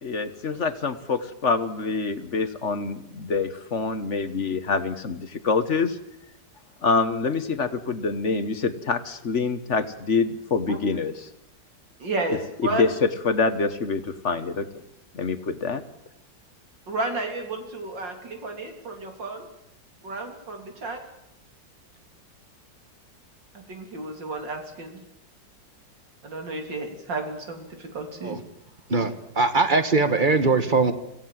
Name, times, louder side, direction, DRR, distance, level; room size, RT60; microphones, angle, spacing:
voice 1, 0.0-6.0 6.8-11.3 12.3-14.8 15.1-15.8, left 4 dB, 45° left, 11 dB, 1.3 m, -26 dB
voice 2, 12.0-12.9 16.9-19.5 20.0-21.0 23.5-25.0 26.2-28.4, right 2 dB, 80° right, 4 dB, 4.0 m, -32 dB
voice 3, 28.9-30.9, right 3 dB, 30° right, 10 dB, 1.5 m, -21 dB
25.5 x 16.0 x 7.6 m, 0.86 s
omnidirectional pair, 2.0 m